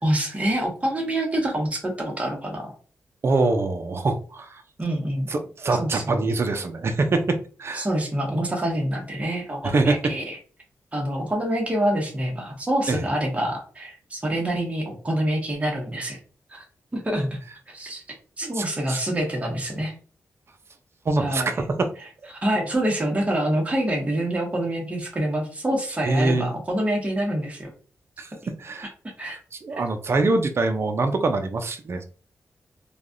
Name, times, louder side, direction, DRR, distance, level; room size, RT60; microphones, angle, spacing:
voice 1, 0.0-2.7 4.8-5.3 5.8-6.2 7.7-10.4 10.9-16.2 16.5-16.6 16.9-17.3 17.7-18.0 18.4-19.9 21.2-21.5 22.4-27.7 29.0-29.4, right 1 dB, 25° right, 0 dB, 1.2 m, -26 dB
voice 2, 3.2-4.6 5.3-7.9 9.6-10.0 12.9-13.1 18.4-19.0 21.1-21.9 26.0-26.5 28.2-28.3 28.6-28.9 29.2-32.0, right 3 dB, 50° right, 6 dB, 0.6 m, -24 dB
3.2 x 2.3 x 2.5 m, 0.40 s
cardioid pair, 75°, 6 cm